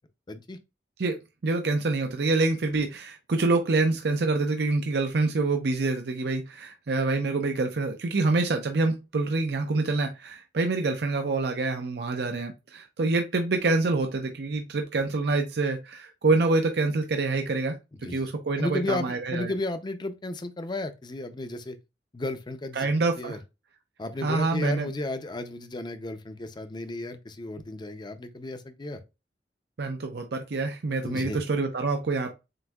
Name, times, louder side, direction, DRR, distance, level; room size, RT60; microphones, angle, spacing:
voice 1, 0.3-0.6 18.0-18.3 18.6-21.8 22.1-23.4 24.0-29.0 31.0-31.4, left 2 dB, 25° left, 0.5 m, -33 dB
voice 2, 1.4-17.8 18.0-19.5 22.7-23.4 24.2-24.9 29.8-32.3, right 3 dB, 65° right, 0.6 m, -26 dB
7.6 x 2.6 x 2.3 m
head